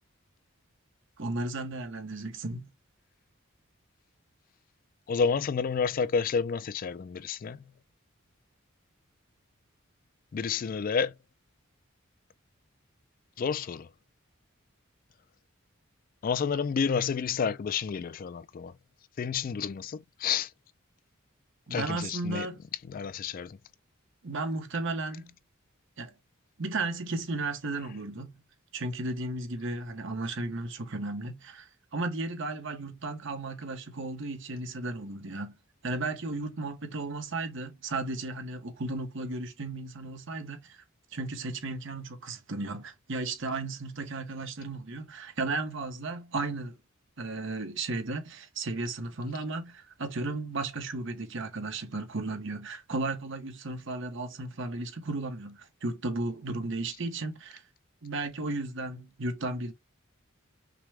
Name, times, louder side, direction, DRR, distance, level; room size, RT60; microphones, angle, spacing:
voice 1, 1.2-2.7 21.7-22.6 24.2-25.3 26.0-26.1 26.6-28.4 28.7-35.6 35.8-40.8 41.1-46.8 47.2-57.6 58.0-59.7, right 2 dB, 60° right, 1.1 m, -34 dB
voice 2, 5.1-7.6 10.3-11.1 13.4-13.9 16.2-18.7 19.2-20.5 21.7-22.5 22.9-23.6, left 6 dB, 40° left, 0.3 m, -30 dB
6.0 x 2.2 x 3.5 m
head